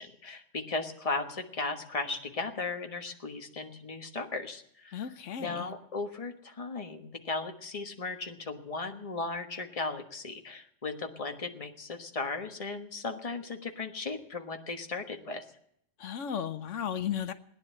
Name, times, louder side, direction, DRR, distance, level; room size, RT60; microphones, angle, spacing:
voice 1, 0.0-15.4, left 3 dB, 30° left, 1.3 m, -36 dB
voice 2, 4.9-5.7 16.0-17.3, left 8 dB, 85° left, 1.1 m, -34 dB
17.5 x 10.0 x 7.6 m
omnidirectional pair, 1.3 m